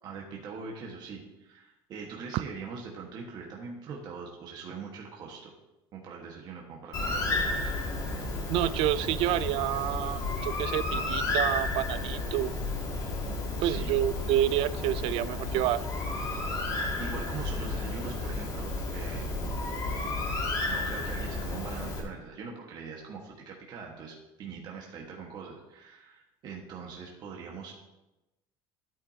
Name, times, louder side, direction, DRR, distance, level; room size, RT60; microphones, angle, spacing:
voice 1, 0.0-5.5 5.9-7.7 13.6-13.9 17.0-19.4 20.5-27.7, right 5 dB, 40° right, -1 dB, 1.5 m, -42 dB
Bird, 6.9-22.0, left 2 dB, 35° left, 2.3 m, -32 dB
voice 2, 8.5-12.6 13.6-15.8, right 13 dB, 60° right, 15 dB, 0.4 m, -28 dB
13.0 x 8.9 x 2.8 m, 0.98 s
cardioid pair, 155°, 11 cm